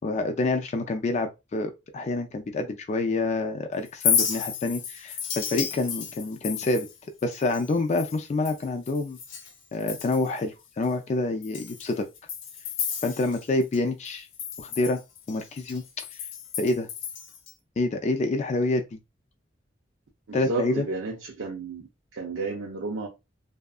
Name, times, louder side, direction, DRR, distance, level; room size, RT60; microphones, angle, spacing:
voice 1, 0.0-6.9 7.2-9.2 9.7-12.1 13.0-14.3 14.6-15.0 15.3-16.2 16.6-16.9 17.8-19.0 20.3-20.8, left 2 dB, 35° left, 0.3 m, -27 dB
Chink clink, 3.9-9.5 9.8-10.4 10.8-10.9 11.4-13.8 14.0-17.5, left 7 dB, 80° left, 0.6 m, -32 dB
voice 2, 20.3-23.1, right 3 dB, 85° right, 0.6 m, -32 dB
2.7 x 2.4 x 2.3 m
head